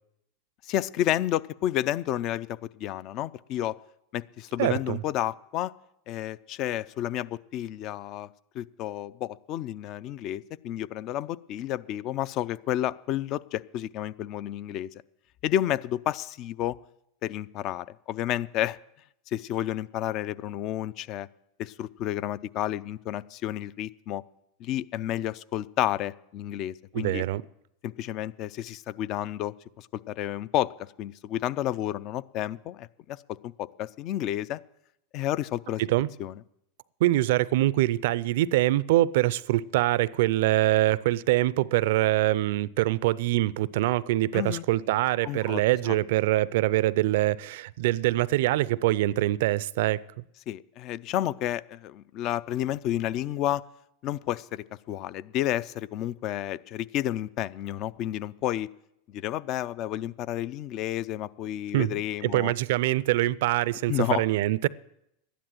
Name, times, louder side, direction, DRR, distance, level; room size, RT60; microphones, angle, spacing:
voice 1, 0.6-2.5 2.7-3.8 4.1-5.7 6.1-8.3 8.5-14.9 15.4-16.8 17.2-18.8 19.3-21.3 21.6-24.2 24.6-27.2 27.8-34.6 35.1-35.8 36.2-36.4 44.3-44.6 45.2-46.0 50.5-53.6 54.0-58.7 59.1-62.5 63.9-64.2, left 12 dB, 50° left, 0.4 m, -31 dB
voice 2, 4.6-5.0 26.9-27.4 35.8-36.1 37.0-50.0 61.7-62.0 62.2-64.7, right 16 dB, 70° right, 0.4 m, -24 dB
12.5 x 10.0 x 7.6 m
hypercardioid pair, 105°, 0 cm